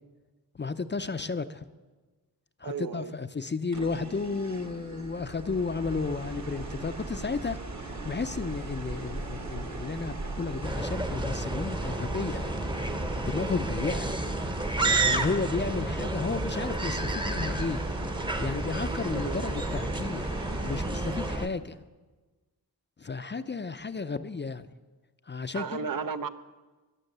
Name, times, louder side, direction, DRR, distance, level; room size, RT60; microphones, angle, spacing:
voice 1, 0.6-1.7 2.6-12.5 13.2-14.1 14.8-17.8 18.4-21.8 23.0-24.7 25.3-25.8, left 4 dB, 30° left, 12 dB, 0.5 m, -33 dB
voice 2, 2.6-3.1 15.1-15.3 19.1-19.4 25.5-26.3, right 6 dB, 60° right, 11 dB, 0.7 m, -34 dB
sound 1, 3.7-21.4, right 2 dB, 45° right, 1.4 m, -37 dB
sound 2, 10.6-21.5, right 2 dB, 15° right, 0.8 m, -31 dB
20.0 x 7.1 x 6.7 m, 1.3 s
wide cardioid pair, 100°, 38 cm